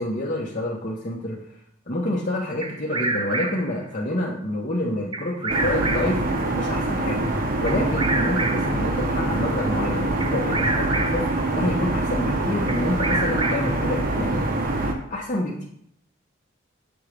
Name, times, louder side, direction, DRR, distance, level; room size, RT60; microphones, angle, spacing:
voice 1, 0.0-1.4 1.9-6.2 6.5-7.2 7.6-14.4 15.1-15.7, left 1 dB, 40° left, -5 dB, 0.8 m, -28 dB
Bird vocalization bird call bird song, 2.6-3.8 5.1-6.2 7.7-8.8 10.2-11.3 12.7-13.8, right 3 dB, 25° right, 0.4 m, -28 dB
sound 1, 5.5-14.9, right 2 dB, 45° right, 0.8 m, -24 dB
7.0 x 3.1 x 5.0 m, 0.69 s
head